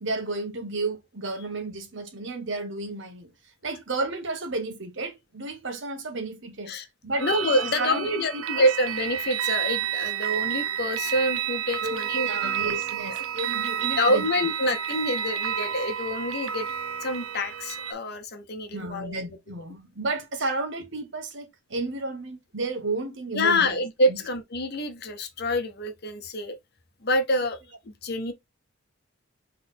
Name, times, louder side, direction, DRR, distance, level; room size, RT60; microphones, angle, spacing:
voice 1, 0.0-3.3 3.6-6.7 7.0-7.3 7.6-8.2 8.6-8.7 11.8-14.2 18.7-23.8 24.1-24.2, right 3 dB, 65° right, 1.2 m, -32 dB
voice 2, 7.2-12.5 14.0-16.7 17.0-19.2 23.3-26.6 27.0-27.6 27.9-28.3, left 1 dB, 50° left, 0.9 m, -27 dB
sound 1, 7.2-17.9, right 9 dB, 90° right, 0.6 m, -30 dB
3.8 x 3.3 x 4.0 m
head